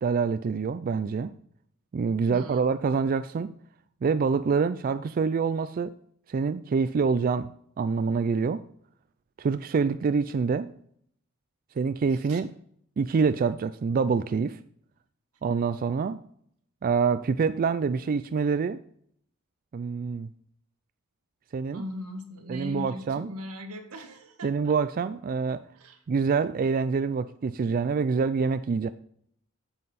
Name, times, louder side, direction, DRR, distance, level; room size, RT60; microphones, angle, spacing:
voice 1, 0.0-1.3 1.9-3.5 4.0-5.9 6.3-7.5 7.8-8.6 9.4-10.7 11.8-12.5 13.0-14.6 15.4-16.2 16.8-18.8 19.7-20.3 21.5-21.8 22.5-23.3 24.4-25.6 26.1-28.9, right 5 dB, 40° right, 12 dB, 0.3 m, -26 dB
voice 2, 2.3-2.7 12.1-12.4 21.7-24.8 25.7-26.0, left 1 dB, 85° right, 5 dB, 1.6 m, -39 dB
9.6 x 7.4 x 4.1 m, 0.66 s
head